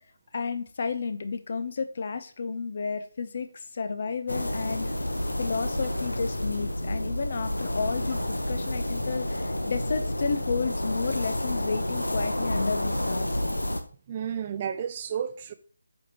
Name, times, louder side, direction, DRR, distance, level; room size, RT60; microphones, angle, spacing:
voice 1, 0.3-5.0 5.4-13.3, left 5 dB, 40° left, 0.7 m, -32 dB
sound 1, 4.3-13.8, left 1 dB, 75° left, 0.9 m, -29 dB
voice 2, 14.1-15.5, right 8 dB, 25° right, 0.4 m, -32 dB
8.2 x 5.0 x 3.0 m
figure-of-eight pair, 155°, 0 cm